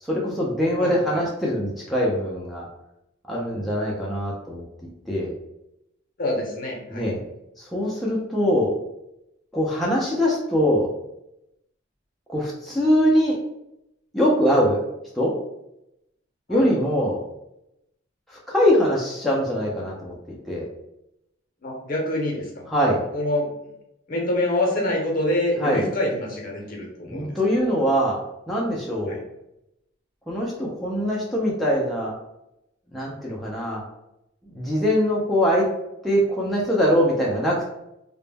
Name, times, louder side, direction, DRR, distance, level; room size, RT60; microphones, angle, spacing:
voice 1, 0.0-2.6 3.3-4.6 5.1-5.3 6.9-7.2 7.6-8.7 9.5-10.9 12.3-13.4 14.1-14.8 15.1-15.3 16.5-17.2 18.3-20.1 20.5-20.7 22.7-23.0 25.6-25.8 27.1-28.2 28.5-29.2 30.3-32.1 32.9-33.8 34.5-35.6 36.0-37.7, equal, ahead, -6 dB, 0.3 m, -22 dB
voice 2, 0.8-1.2 6.2-7.0 16.5-16.7 21.6-22.6 23.1-23.5 24.1-27.3 29.1-29.2, left 1 dB, 45° left, -1 dB, 0.6 m, -26 dB
2.1 x 2.0 x 3.2 m, 0.85 s
head